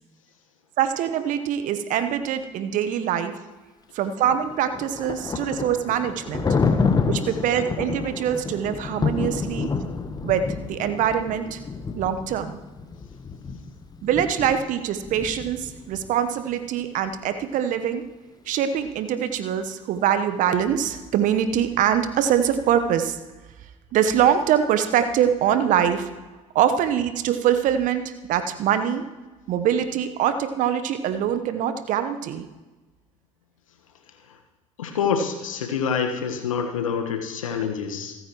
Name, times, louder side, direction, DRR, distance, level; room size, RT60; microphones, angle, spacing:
voice 1, 0.8-3.4 3.9-6.5 7.0-9.7 10.2-11.6 11.9-12.6 14.0-18.1 18.5-23.2 23.9-26.1 26.5-29.1 29.5-32.4, right 9 dB, 50° right, 10 dB, 1.1 m, -23 dB
Thunder, 4.3-16.1, left 4 dB, 25° left, 1.2 m, -29 dB
voice 2, 34.8-38.1, left 6 dB, 75° left, 5 dB, 1.5 m, -26 dB
28.0 x 9.3 x 3.1 m, 1.2 s
figure-of-eight pair, 60°, 17 cm